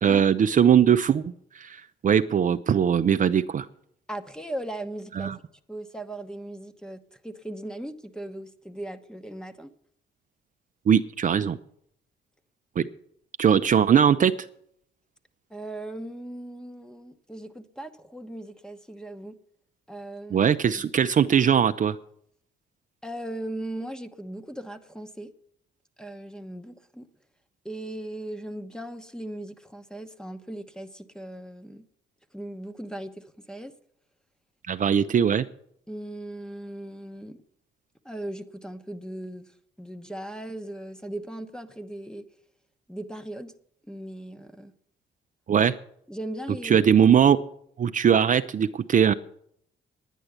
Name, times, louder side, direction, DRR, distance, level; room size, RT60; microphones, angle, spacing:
voice 1, 0.0-3.7 5.2-5.4 10.9-11.6 12.8-12.9 13.4-14.3 20.3-22.0 34.7-35.5 45.5-45.7 46.6-47.4 47.8-49.1, right 8 dB, 40° right, 9 dB, 0.5 m, -20 dB
voice 2, 4.1-5.3 5.7-9.7 15.5-19.4 19.9-20.9 23.0-25.3 26.0-27.1 27.6-31.9 32.3-33.7 35.9-37.4 38.0-42.3 42.9-43.5 43.9-44.7 46.1-47.1, right 1 dB, 5° left, 10 dB, 1.0 m, -38 dB
10.0 x 9.9 x 8.0 m, 0.69 s
cardioid pair, 90°, 20 cm